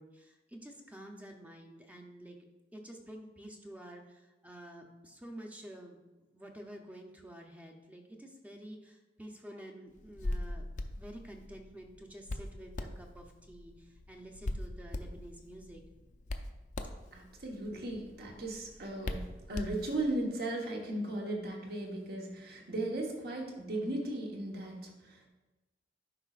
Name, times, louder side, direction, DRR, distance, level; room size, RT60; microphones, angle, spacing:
voice 1, 0.0-2.4 2.7-6.0 6.3-10.7 11.0-15.8, right 1 dB, 10° right, 2 dB, 0.7 m, -49 dB
Hands, 10.0-20.2, left 1 dB, 45° left, 0.5 m, -42 dB
voice 2, 17.1-25.3, right 1 dB, 60° right, 0 dB, 1.2 m, -37 dB
11.0 x 5.0 x 2.5 m, 1.1 s
head